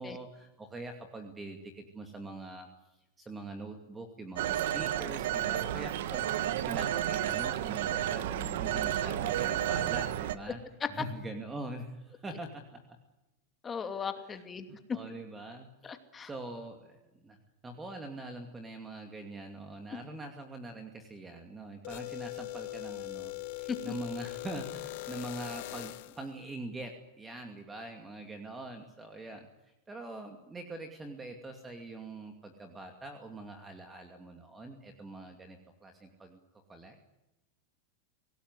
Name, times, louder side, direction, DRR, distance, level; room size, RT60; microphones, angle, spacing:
voice 1, 0.0-2.7 3.2-10.6 10.9-13.0 14.2-14.4 14.7-15.7 16.2-17.4 17.6-36.4 36.7-37.0, right 2 dB, 10° right, 5 dB, 2.5 m, -43 dB
Telephone, 4.4-10.4, right 11 dB, 70° right, 1.6 m, -31 dB
voice 2, 13.6-14.7 15.8-16.3 23.7-23.8, left 6 dB, 15° left, 7 dB, 2.6 m, -37 dB
sound 1, 21.8-26.3, left 21 dB, 60° left, 1.1 m, -40 dB
25.0 x 18.5 x 9.8 m, 0.96 s
supercardioid pair, 150°, 0 cm